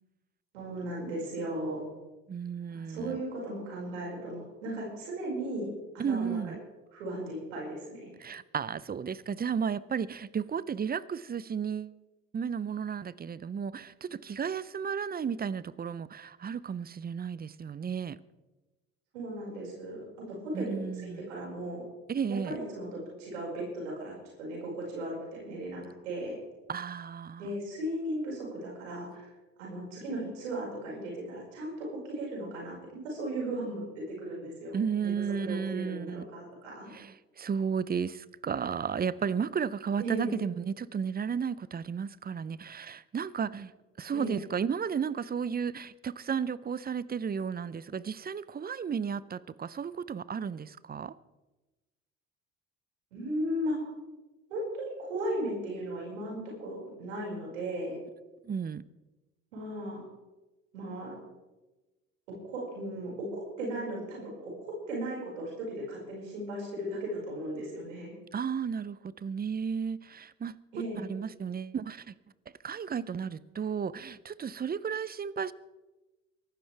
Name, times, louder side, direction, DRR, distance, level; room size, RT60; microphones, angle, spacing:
voice 1, 0.5-1.8 2.7-5.7 6.1-6.6 6.9-8.1 19.1-20.0 20.3-21.8 22.4-26.4 27.4-29.3 29.6-35.1 35.4-36.9 40.0-40.3 44.1-44.4 53.1-53.8 54.5-58.0 59.5-60.0 60.7-61.2 62.3-64.5 64.9-68.1 70.7-71.0, right 1 dB, 85° right, 5.6 m, -36 dB
voice 2, 2.3-3.2 6.0-6.6 8.2-12.0 12.3-18.2 20.5-21.3 22.1-22.6 26.7-27.5 34.7-36.3 36.9-43.7 44.0-51.1 58.4-58.9 68.3-70.6 71.0-72.1 72.6-75.5, right 6 dB, 25° right, 0.7 m, -33 dB
23.5 x 12.5 x 3.4 m
hypercardioid pair, 60°, 36 cm